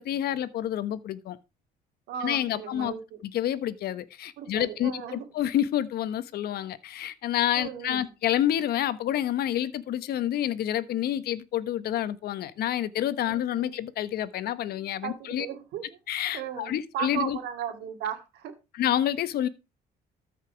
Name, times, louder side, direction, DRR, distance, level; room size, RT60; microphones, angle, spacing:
voice 1, 0.0-1.4 2.2-2.9 3.2-15.5 16.1-17.4 18.7-19.5, left 11 dB, 65° left, 1.2 m, -28 dB
voice 2, 2.1-3.2 4.4-5.2 7.5-8.1 13.3-13.7 15.0-15.9 16.3-18.5, right 9 dB, 80° right, 2.4 m, -36 dB
13.5 x 5.8 x 4.6 m
cardioid pair, 110°, 17 cm